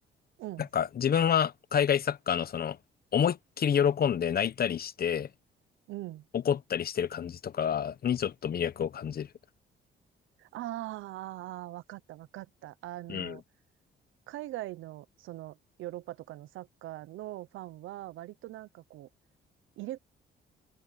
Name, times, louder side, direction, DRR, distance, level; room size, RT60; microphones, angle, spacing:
voice 1, 0.7-2.8 3.1-5.3 6.3-9.3 13.1-13.4, left 8 dB, 50° left, 1.1 m, -28 dB
voice 2, 5.9-6.2 10.4-13.4 14.3-19.1 19.8-20.0, right 15 dB, 90° right, 0.8 m, -41 dB
cardioid pair, 90°, 20 cm